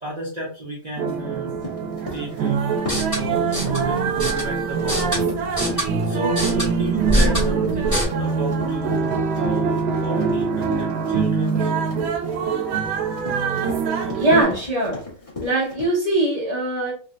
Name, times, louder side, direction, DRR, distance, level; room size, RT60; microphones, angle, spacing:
voice 1, 0.0-5.8 6.0-11.7 12.3-12.5, right 1 dB, 40° right, -6 dB, 0.5 m, -33 dB
sound 1, 1.0-14.4, right 5 dB, 80° right, 1.4 m, -24 dB
Run, 1.6-15.9, left 2 dB, 25° left, 0.8 m, -38 dB
sound 2, 2.8-8.0, right 1 dB, 10° left, 1.4 m, -25 dB
voice 2, 14.2-15.1 15.4-16.9, right 1 dB, 70° left, -6 dB, 0.3 m, -21 dB
3.2 x 3.2 x 2.5 m, 0.40 s
omnidirectional pair, 2.3 m